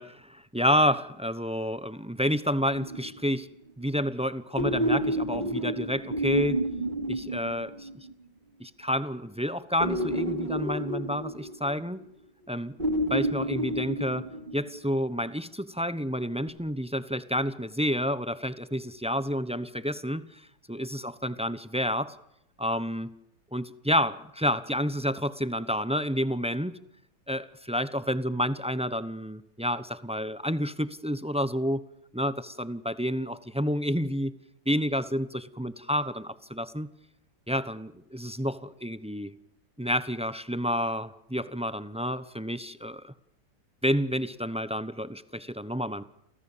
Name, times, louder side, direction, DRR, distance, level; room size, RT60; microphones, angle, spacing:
voice 1, 0.0-3.5 3.8-6.6 7.1-7.9 8.6-12.0 12.5-12.8 13.1-14.3 14.5-20.3 20.7-22.2 22.6-23.1 23.5-26.7 27.3-31.8 32.1-34.3 34.7-36.9 37.5-39.3 39.8-43.1 43.8-46.0, equal, 5° right, 14 dB, 0.5 m, -29 dB
sound 1, 2.7-3.4 4.6-8.1 9.8-12.0 12.8-14.8 16.5-16.6, right 1 dB, 25° right, 2.9 m, -30 dB
30.0 x 24.0 x 7.4 m, 0.80 s
omnidirectional pair, 1.8 m